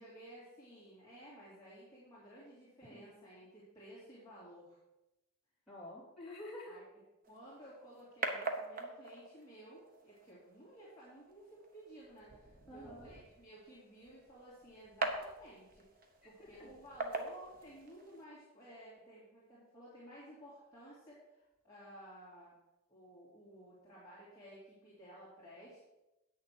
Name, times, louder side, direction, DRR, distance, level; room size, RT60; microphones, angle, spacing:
voice 1, 0.0-4.8 6.7-6.8 7.3-22.5 22.9-25.9, right 1 dB, 15° left, -9 dB, 2.6 m, -55 dB
voice 2, 5.7-6.8 12.7-13.1 16.2-16.7, left 1 dB, ahead, -7 dB, 3.5 m, -49 dB
sound 1, 7.2-18.2, right 3 dB, 40° right, 1.0 m, -44 dB
8.6 x 6.6 x 6.1 m, 0.97 s
head